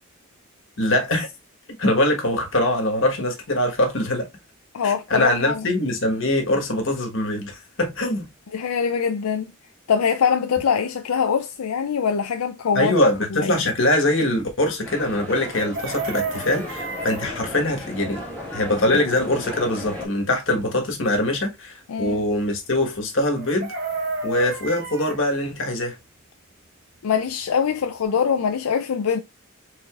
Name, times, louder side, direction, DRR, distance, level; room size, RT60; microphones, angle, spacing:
voice 1, 0.8-1.3 1.8-4.3 4.8-8.3 12.7-18.2 18.5-23.7 24.2-25.9, left 1 dB, 60° left, 1.4 m, -23 dB
voice 2, 4.7-5.7 8.5-9.5 9.9-13.6 21.9-22.2 27.0-29.2, left 6 dB, 85° left, 0.5 m, -23 dB
sound 1, 14.8-20.1, left 1 dB, 10° left, 1.5 m, -35 dB
Chicken rooster, 15.5-17.3 23.4-25.2 27.4-27.5 27.8-28.1, right 3 dB, 50° right, 1.0 m, -31 dB
4.7 x 4.1 x 2.4 m
head